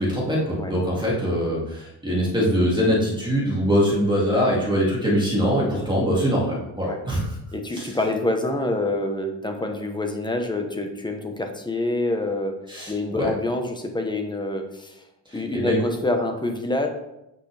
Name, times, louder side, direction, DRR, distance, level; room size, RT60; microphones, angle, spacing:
voice 1, 0.0-7.3 7.7-8.0 12.7-13.3 15.3-15.8, equal, 10° right, -5 dB, 2.3 m, -23 dB
voice 2, 7.5-12.5 12.9-15.0 15.3-16.9, left 2 dB, 10° left, 4 dB, 1.0 m, -26 dB
8.2 x 6.0 x 3.4 m, 0.88 s
cardioid pair, 130°, 42 cm